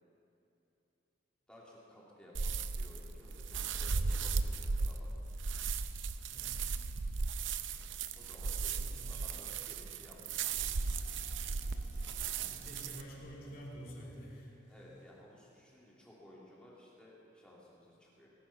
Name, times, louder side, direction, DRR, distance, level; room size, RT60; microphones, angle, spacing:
voice 1, 1.5-5.1 8.1-10.4 14.7-18.3, left 1 dB, 5° left, -6 dB, 2.6 m, -57 dB
sound 1, 2.3-13.0, right 4 dB, 75° right, 0.6 m, -36 dB
voice 2, 6.3-6.7 8.8-9.3 12.4-14.6, equal, 50° left, -3 dB, 3.0 m, -49 dB
sound 2, 10.1-15.2, left 1 dB, 70° left, 3.4 m, -60 dB
19.0 x 10.5 x 5.7 m, 2.9 s
head